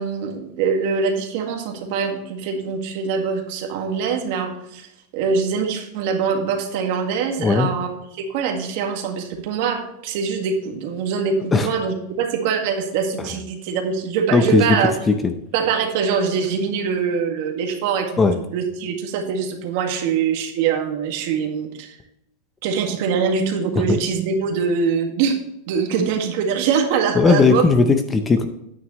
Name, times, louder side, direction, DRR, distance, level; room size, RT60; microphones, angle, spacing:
voice 1, 0.0-4.9 5.1-14.9 15.5-18.1 18.5-21.9 22.6-25.4 25.7-27.6, right 6 dB, 50° right, 4 dB, 1.8 m, -23 dB
voice 2, 7.4-7.7 11.5-11.7 14.3-14.7 15.1-15.2 18.2-18.4 23.9-24.0 27.1-28.5, left 4 dB, 15° left, 8 dB, 0.6 m, -16 dB
9.5 x 9.2 x 3.1 m, 0.81 s
supercardioid pair, 165°, 0 cm